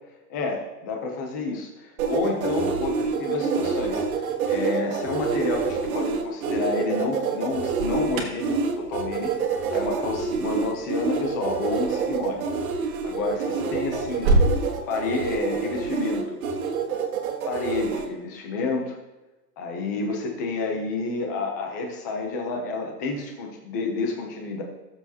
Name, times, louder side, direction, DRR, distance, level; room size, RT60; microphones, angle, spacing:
voice 1, 0.3-4.1 4.5-9.3 9.7-12.4 12.8-14.4 14.9-16.4 17.5-19.0 19.6-24.6, left 3 dB, 10° left, 2 dB, 0.5 m, -29 dB
sound 1, 2.0-18.0, right 5 dB, 55° right, 1.7 m, -27 dB
Alarm, 7.4-14.6, right 2 dB, 35° right, 1.6 m, -30 dB
20.0 x 7.2 x 2.8 m, 1.1 s
hypercardioid pair, 160°, 49 cm